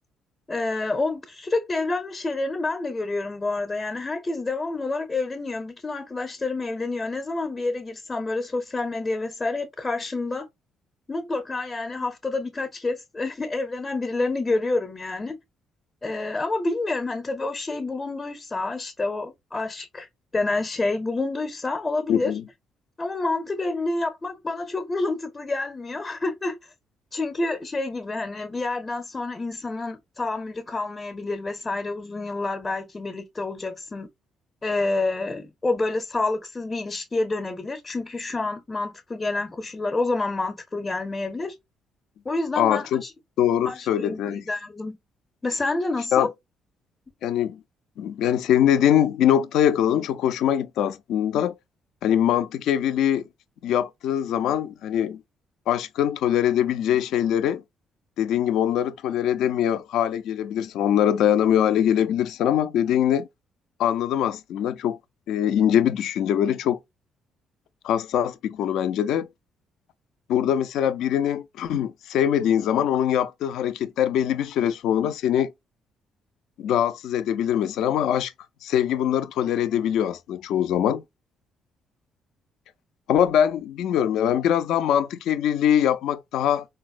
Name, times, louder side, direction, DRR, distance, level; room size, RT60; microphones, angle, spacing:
voice 1, 0.5-10.5 11.1-15.4 16.0-22.3 23.0-26.6 27.1-34.1 34.6-41.6 42.2-43.1 43.6-45.0 45.4-46.3, left 2 dB, 25° left, 0.6 m, -28 dB
voice 2, 22.1-22.4 42.6-43.0 43.4-44.4 46.1-46.3 47.2-47.6 48.0-51.5 52.0-53.2 53.6-55.2 55.7-57.6 58.2-63.3 63.8-65.0 65.3-66.8 67.8-69.3 70.3-75.5 76.6-78.3 78.6-81.0 83.1-86.7, left 10 dB, 75° left, 0.3 m, -22 dB
3.9 x 2.0 x 2.4 m
supercardioid pair, 60°, 0 cm